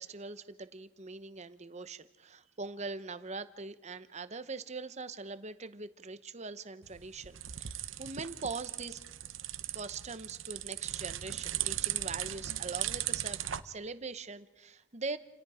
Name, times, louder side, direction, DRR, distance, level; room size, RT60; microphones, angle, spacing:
voice 1, 0.0-9.0 9.7-15.2, right 3 dB, 35° right, 12 dB, 1.0 m, -42 dB
sound 1, 6.8-13.6, right 12 dB, 70° right, 0.9 m, -37 dB
29.0 x 28.0 x 5.0 m, 0.97 s
head